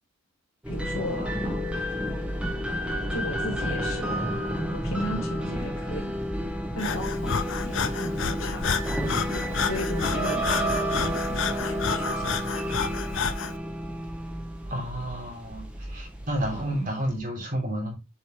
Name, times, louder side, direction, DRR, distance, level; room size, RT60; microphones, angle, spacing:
sound 1, 0.6-17.2, equal, 5° right, 1.3 m, -30 dB
voice 1, 0.7-1.8 3.1-4.2 4.7-6.2 6.7-8.7 9.6-12.4, left 1 dB, 80° left, 2.4 m, -36 dB
Breathing, 6.8-13.6, left 6 dB, 60° left, 0.7 m, -30 dB
voice 2, 14.7-17.9, right 1 dB, 40° right, 3.8 m, -31 dB
7.5 x 5.5 x 3.3 m
head